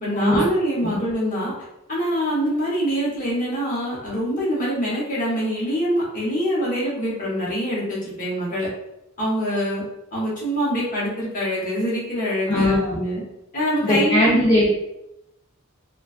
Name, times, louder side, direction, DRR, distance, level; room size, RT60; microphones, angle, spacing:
voice 1, 0.0-1.5 1.9-8.7 9.2-9.8 10.1-13.2 13.5-14.3, equal, 40° left, -6 dB, 0.9 m, -24 dB
voice 2, 12.5-13.0 13.8-14.7, left 1 dB, 20° left, -8 dB, 0.5 m, -19 dB
2.3 x 2.3 x 2.4 m, 0.87 s
head